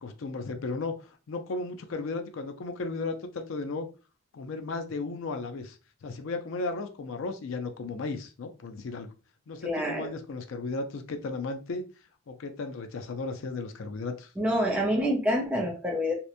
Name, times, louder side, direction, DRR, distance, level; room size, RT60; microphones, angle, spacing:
voice 1, 0.0-3.9 4.3-9.1 9.5-11.8 12.3-14.3, left 3 dB, 70° left, 6 dB, 0.4 m, -35 dB
voice 2, 9.6-10.1 14.4-16.1, equal, 5° right, -1 dB, 0.5 m, -27 dB
2.8 x 2.1 x 2.4 m, 0.32 s
head